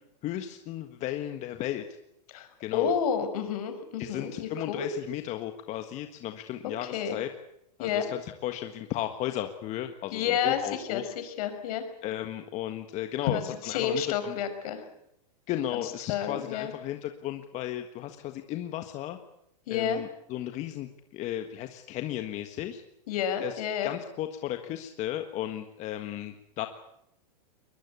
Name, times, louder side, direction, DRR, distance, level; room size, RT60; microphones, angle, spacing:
voice 1, 0.2-1.8 2.6-2.9 4.0-7.3 7.8-11.0 12.0-14.4 15.5-19.2 19.7-22.8 23.4-26.7, left 12 dB, 35° left, 7 dB, 1.6 m, -35 dB
voice 2, 2.3-4.9 6.9-7.2 7.8-8.0 10.1-11.8 13.2-14.8 16.1-16.7 19.7-20.0 23.1-23.9, left 8 dB, 60° left, 8 dB, 5.5 m, -30 dB
22.5 x 21.5 x 8.4 m, 0.79 s
hypercardioid pair, 130°, 21 cm